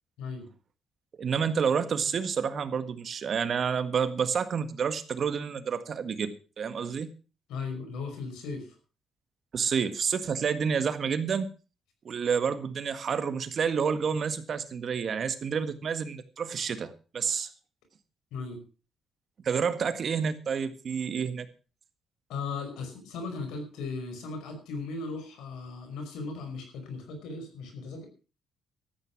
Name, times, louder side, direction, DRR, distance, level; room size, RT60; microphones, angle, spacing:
voice 1, 1.2-7.1 9.5-11.5 12.1-17.5 19.4-21.5, right 6 dB, 55° right, 11 dB, 1.7 m, -29 dB
voice 2, 7.5-8.8 18.3-18.6 22.3-28.1, left 4 dB, 90° left, 5 dB, 5.4 m, -37 dB
13.5 x 9.6 x 6.1 m, 0.35 s
cardioid pair, 90°, 0 cm